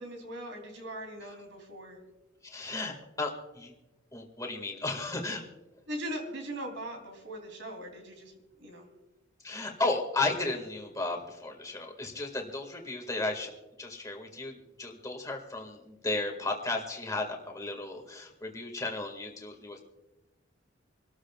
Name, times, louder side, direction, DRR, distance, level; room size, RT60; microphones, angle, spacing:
voice 1, 0.0-2.0 5.9-8.3 8.6-8.9, right 1 dB, 70° right, 3 dB, 3.3 m, -40 dB
voice 2, 2.5-3.7 4.1-5.4 9.4-13.5 13.8-19.8, left 2 dB, 15° left, 2 dB, 2.0 m, -34 dB
27.0 x 13.0 x 2.4 m, 1.1 s
head